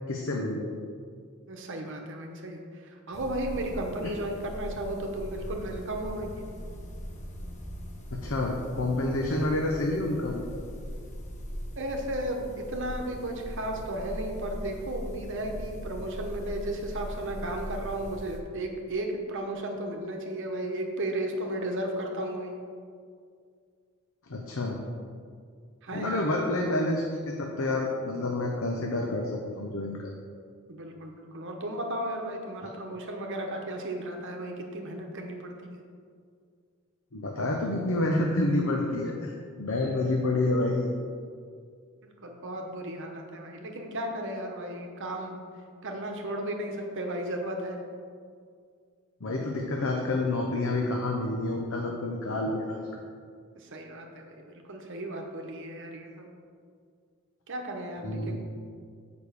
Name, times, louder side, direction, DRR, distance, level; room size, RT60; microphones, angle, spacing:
voice 1, 0.1-0.7 8.1-10.6 24.3-24.8 25.9-30.2 32.6-32.7 37.1-39.3 39.6-40.9 49.2-53.0 58.0-58.4, left 2 dB, 70° left, 0 dB, 0.8 m, -28 dB
voice 2, 1.5-6.3 11.8-22.5 25.8-26.2 30.7-35.8 42.0-45.4 45.8-47.8 53.5-56.3 57.5-58.4, right 1 dB, 60° right, 2 dB, 1.0 m, -34 dB
sound 1, 3.1-18.4, equal, 35° left, 1.0 m, -40 dB
7.1 x 5.1 x 6.5 m, 2.2 s
head